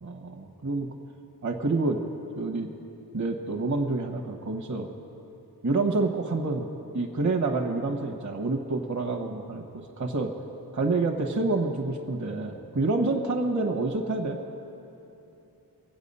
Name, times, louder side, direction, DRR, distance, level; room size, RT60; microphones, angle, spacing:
voice 1, 0.0-0.9 1.4-2.0 2.3-2.7 3.1-4.9 5.6-6.7 6.9-9.7 10.0-10.3 10.7-14.4, right 3 dB, 45° right, 3 dB, 1.2 m, -28 dB
23.5 x 8.3 x 5.5 m, 2.9 s
wide cardioid pair, 95°, 40 cm